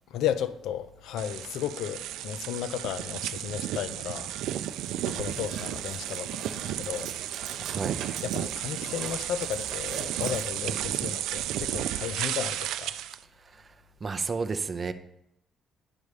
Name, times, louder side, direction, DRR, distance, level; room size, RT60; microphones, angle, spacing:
voice 1, 0.1-4.3 5.1-7.2 8.2-13.0, left 9 dB, 70° left, 0.5 m, -34 dB
sound 1, 1.2-13.2, right 12 dB, 80° right, 0.4 m, -33 dB
sound 2, 4.4-11.8, right 7 dB, 65° right, 1.0 m, -43 dB
voice 2, 7.6-8.0 13.4-13.7 14.0-14.9, right 4 dB, 20° right, 0.5 m, -32 dB
10.5 x 5.3 x 4.9 m
cardioid pair, 175°, 0 cm